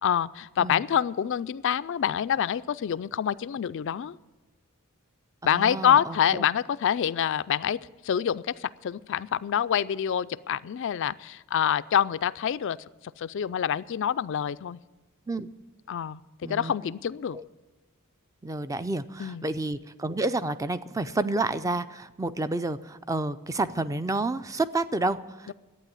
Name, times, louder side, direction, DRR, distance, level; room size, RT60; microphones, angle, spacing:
voice 1, 0.0-4.2 5.4-12.8 13.2-14.8 15.9-17.4 19.2-19.4 25.5-25.6, left 9 dB, 55° left, 15 dB, 0.3 m, -26 dB
voice 2, 5.4-6.5 15.3-15.5 16.4-16.7 17.3-17.4 18.4-25.5, right 2 dB, 15° right, 13 dB, 0.4 m, -30 dB
11.5 x 8.9 x 9.3 m, 1.2 s
head